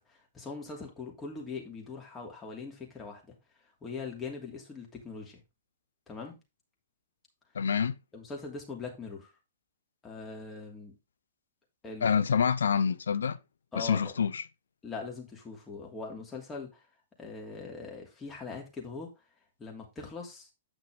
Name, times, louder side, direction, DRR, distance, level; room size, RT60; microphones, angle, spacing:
voice 1, 0.0-3.3 3.8-5.4 6.1-6.4 8.1-9.3 10.0-11.0 11.8-12.2 13.7-14.1 14.8-16.8 17.2-19.1 19.6-20.5, left 4 dB, 15° left, 2.8 m, -41 dB
voice 2, 7.5-8.0 12.0-13.4 13.8-14.4, left 6 dB, 65° left, 0.6 m, -27 dB
8.8 x 5.9 x 3.6 m
figure-of-eight pair, 110°, 0 cm